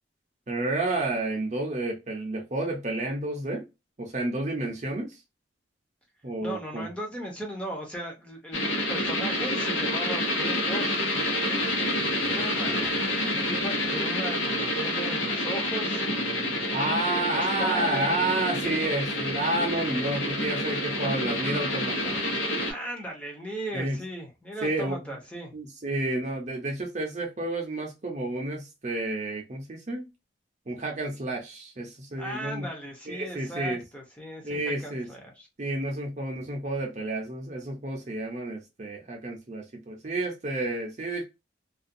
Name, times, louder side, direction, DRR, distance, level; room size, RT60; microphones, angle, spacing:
voice 1, 0.5-3.6 4.0-5.2 6.2-6.9 12.2-12.9 16.7-22.2 23.7-24.0 24.6-25.1 25.5-30.0 30.7-32.7 33.1-33.8 34.4-35.1 35.6-41.2, right 2 dB, 40° right, 0.6 m, -30 dB
voice 2, 6.4-11.1 12.3-16.6 17.0-18.2 22.7-25.6 32.2-35.5, right 1 dB, 5° left, 0.7 m, -37 dB
sound 1, 8.5-22.7, left 1 dB, 90° left, 1.0 m, -28 dB
2.5 x 2.3 x 2.6 m
head